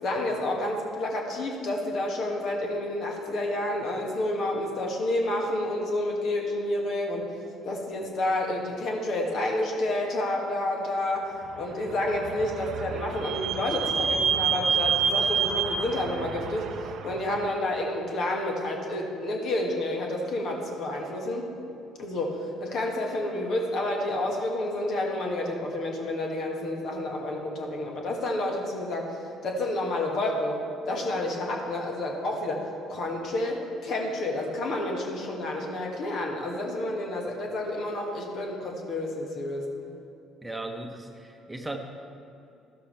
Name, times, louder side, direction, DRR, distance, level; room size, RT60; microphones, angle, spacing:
voice 1, 0.0-7.3 7.6-21.5 22.0-30.6 30.9-39.6, left 1 dB, 55° left, 0 dB, 1.9 m, -29 dB
Vehicle / Squeak, 11.8-17.4, right 6 dB, 55° right, 0.7 m, -28 dB
voice 2, 40.4-41.8, right 2 dB, 10° right, 3 dB, 1.1 m, -37 dB
13.0 x 12.5 x 3.4 m, 2.7 s
figure-of-eight pair, 50°, 0 cm